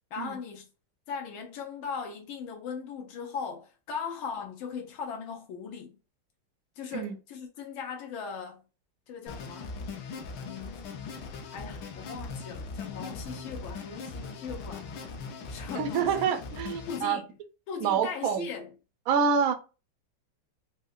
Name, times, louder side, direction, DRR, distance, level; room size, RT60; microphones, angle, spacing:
voice 1, 0.1-0.7 1.1-6.0 6.8-8.6 9.1-9.8 10.4-10.9 11.5-16.3 16.9-17.3 17.7-18.7, left 6 dB, 85° left, 1.4 m, -39 dB
sound 1, 9.3-17.0, left 4 dB, 70° left, 1.2 m, -40 dB
voice 2, 15.7-17.2 17.8-18.5 19.1-19.5, right 6 dB, 80° right, 0.7 m, -27 dB
4.6 x 2.1 x 2.3 m
omnidirectional pair, 2.2 m